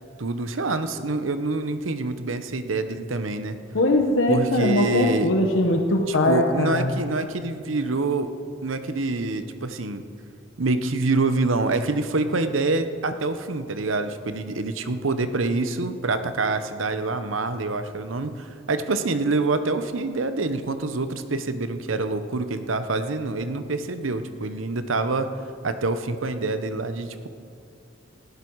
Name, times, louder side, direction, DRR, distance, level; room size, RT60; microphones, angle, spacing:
voice 1, 0.2-3.6 4.3-5.3 6.1-8.3 8.6-10.0 10.6-25.3 25.6-27.3, right 3 dB, 85° right, 10 dB, 0.9 m, -26 dB
voice 2, 3.7-6.9, left 1 dB, 80° left, 2 dB, 1.2 m, -21 dB
18.5 x 14.5 x 4.7 m, 2.5 s
head